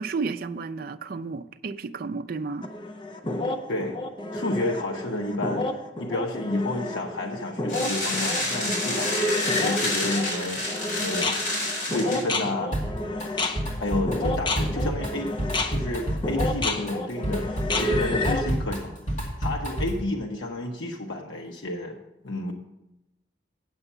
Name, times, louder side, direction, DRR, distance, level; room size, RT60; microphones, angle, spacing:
voice 1, 0.0-2.7, right 4 dB, 50° right, 0.4 m, -32 dB
sound 1, 2.6-18.5, left 2 dB, 25° left, 0.6 m, -30 dB
voice 2, 3.7-4.0 4.3-5.7 6.0-10.6 11.0-12.7 13.8-15.3 15.7-19.0 19.4-22.0 22.2-22.5, left 1 dB, 80° left, 0.9 m, -30 dB
sound 2, 7.7-12.2, left 1 dB, 60° left, 4.2 m, -29 dB
Drum kit, 12.7-13.3 13.6-20.1, right 1 dB, 45° left, 2.3 m, -29 dB
8.9 x 7.1 x 5.5 m
head